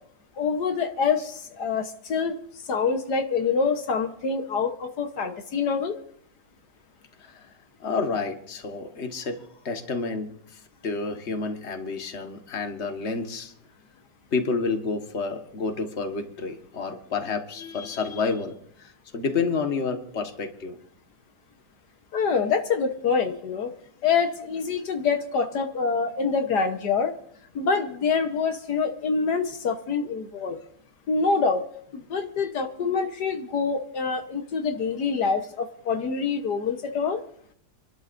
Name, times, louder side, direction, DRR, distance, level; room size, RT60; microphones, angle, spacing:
voice 1, 0.4-2.4 2.7-6.0 22.1-23.7 24.0-27.1 27.5-30.6 31.1-31.6 32.1-37.2, left 5 dB, 75° left, 6 dB, 1.7 m, -26 dB
voice 2, 7.8-13.5 14.3-20.8, left 4 dB, 40° left, 5 dB, 1.7 m, -30 dB
28.5 x 12.5 x 2.6 m, 0.67 s
omnidirectional pair, 1.8 m